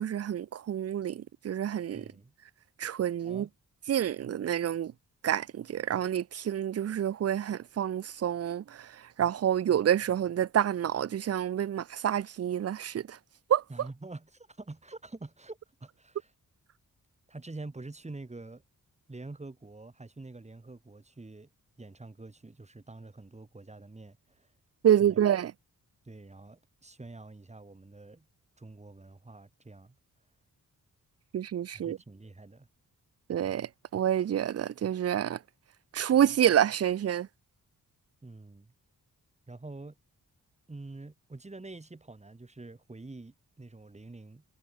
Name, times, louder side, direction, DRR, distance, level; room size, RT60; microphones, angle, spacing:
voice 1, 0.0-2.0 2.8-3.5 3.9-4.9 5.2-8.9 9.2-13.2 13.5-13.6 24.8-25.5 31.3-32.0 33.3-35.4 35.9-37.3, right 10 dB, 45° right, 0.5 m, -28 dB
voice 2, 1.9-2.3 3.2-3.5 13.7-16.3 17.3-18.6 19.1-21.5 21.8-24.5 25.0-25.2 26.0-28.3 28.6-30.0 31.7-32.7 38.2-38.7 39.5-40.0 40.7-44.4, right 2 dB, 20° right, 4.2 m, -46 dB
wide cardioid pair, 175°, 35 cm